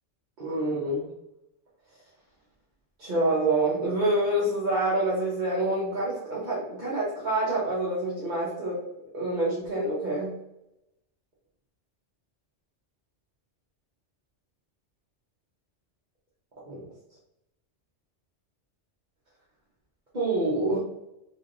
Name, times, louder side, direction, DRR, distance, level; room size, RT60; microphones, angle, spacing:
voice 1, 0.4-1.1 3.0-8.8 9.1-10.3 16.7-16.8 20.1-20.8, right 2 dB, 40° right, -6 dB, 1.2 m, -27 dB
3.6 x 3.4 x 3.7 m, 0.85 s
omnidirectional pair, 1.2 m